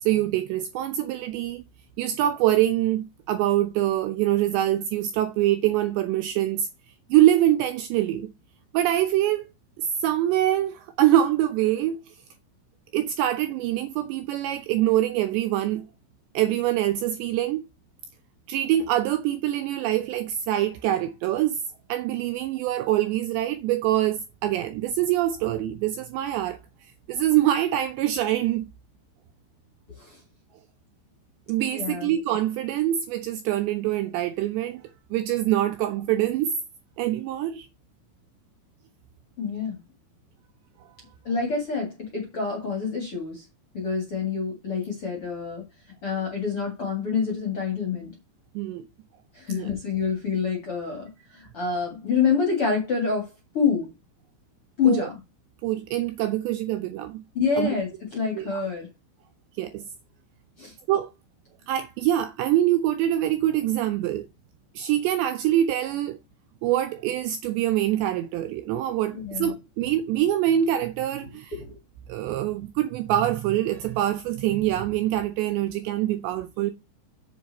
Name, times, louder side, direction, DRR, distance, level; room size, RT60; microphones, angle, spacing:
voice 1, 0.0-1.6 2.0-6.7 7.1-8.3 8.7-9.5 9.8-12.1 12.9-15.8 16.3-17.7 18.5-21.6 21.9-26.6 27.1-28.7 31.5-34.8 35.1-36.5 37.0-37.7 48.6-48.9 49.5-49.7 54.9-55.1 55.6-57.2 57.6-57.7 58.4-58.6 59.6-59.8 60.9-61.1 61.7-64.3 64.8-66.2 66.6-71.5 72.1-76.7, right 12 dB, 80° right, 2.6 m, -24 dB
voice 2, 31.7-32.1 39.4-39.8 41.2-43.4 43.7-45.7 46.0-48.1 49.3-51.1 51.3-53.9 54.8-55.2 57.3-58.9 60.6-60.7 69.1-69.5 71.5-71.8, left 6 dB, 45° left, 1.9 m, -27 dB
7.7 x 7.4 x 4.0 m
omnidirectional pair, 5.7 m